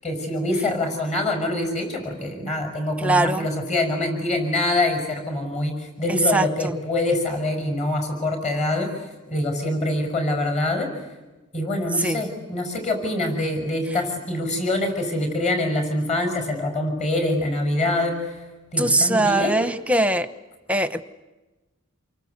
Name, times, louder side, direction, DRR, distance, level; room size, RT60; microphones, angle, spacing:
voice 1, 0.0-10.9 11.5-18.4 18.7-19.7, left 1 dB, 30° left, 5 dB, 6.2 m, -25 dB
voice 2, 3.0-3.5 6.1-6.7 12.0-12.2 18.8-20.3 20.7-21.0, right 2 dB, 5° right, 10 dB, 0.9 m, -21 dB
28.5 x 23.5 x 8.1 m, 1.1 s
head